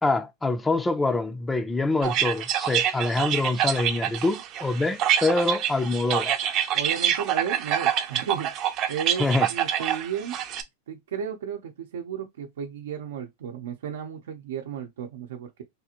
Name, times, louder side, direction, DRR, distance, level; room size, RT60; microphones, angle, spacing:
voice 1, 0.0-6.4 9.2-9.5, left 3 dB, 10° left, 0.4 m, -25 dB
sound 1, 2.0-10.6, right 10 dB, 35° right, 0.6 m, -26 dB
voice 2, 6.7-8.5 8.9-10.3 10.9-15.6, right 8 dB, 80° right, 0.7 m, -34 dB
3.5 x 2.5 x 2.9 m
supercardioid pair, 150°, 0 cm